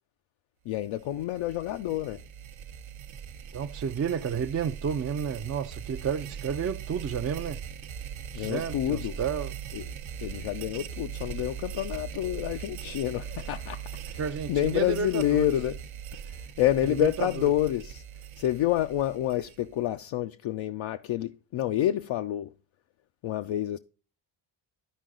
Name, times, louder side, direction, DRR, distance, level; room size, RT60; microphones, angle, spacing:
voice 1, 0.7-2.2 8.3-9.2 9.7-9.8 10.2-14.2 14.5-15.7 16.2-18.0 18.4-22.5 23.2-23.8, left 13 dB, 70° left, 0.5 m, -28 dB
sound 1, 0.8-19.9, right 8 dB, 70° right, 0.8 m, -40 dB
voice 2, 3.5-7.6 8.3-9.5 14.2-15.5 16.9-17.3, right 7 dB, 30° right, 0.4 m, -31 dB
12.5 x 4.6 x 3.7 m
cardioid pair, 75°, 50 cm